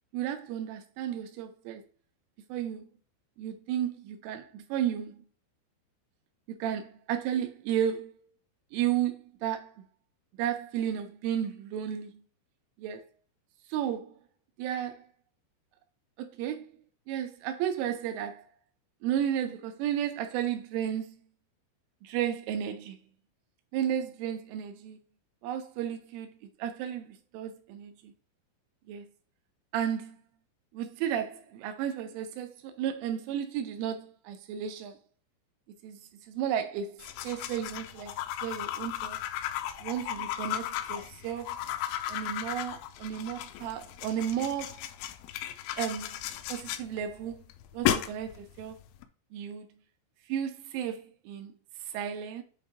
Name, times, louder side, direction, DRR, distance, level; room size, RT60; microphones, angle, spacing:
voice 1, 0.1-1.8 2.5-2.9 3.4-5.2 6.5-8.2 8.7-9.9 10.4-12.2 12.8-13.0 13.7-14.2 14.6-15.0 16.2-16.7 17.1-18.4 19.0-21.2 22.0-23.0 23.7-25.0 25.4-28.1 28.9-29.1 29.7-30.2 30.7-35.0 35.8-36.0 36.3-39.2 39.8-41.6 42.1-44.8 45.8-46.2 46.5-47.4 47.7-48.8 49.3-49.7 50.3-51.5 51.9-52.4, right 9 dB, 80° right, 3.2 m, -33 dB
sound 1, 37.0-49.0, left 12 dB, 85° left, 2.7 m, -35 dB
8.2 x 3.0 x 4.7 m
omnidirectional pair, 5.8 m